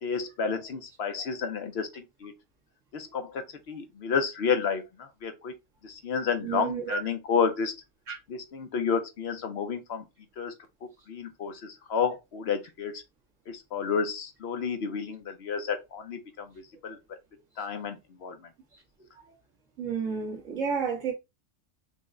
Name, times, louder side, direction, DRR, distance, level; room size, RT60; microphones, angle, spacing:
voice 1, 0.0-2.3 2.9-5.6 5.8-7.7 8.3-10.0 10.4-10.5 10.8-13.0 13.5-17.2 17.6-18.5, left 6 dB, 60° left, 0.9 m, -31 dB
voice 2, 6.4-7.0 8.1-8.2 19.8-21.1, right 6 dB, 85° right, 1.7 m, -30 dB
5.3 x 2.1 x 3.7 m
omnidirectional pair, 1.3 m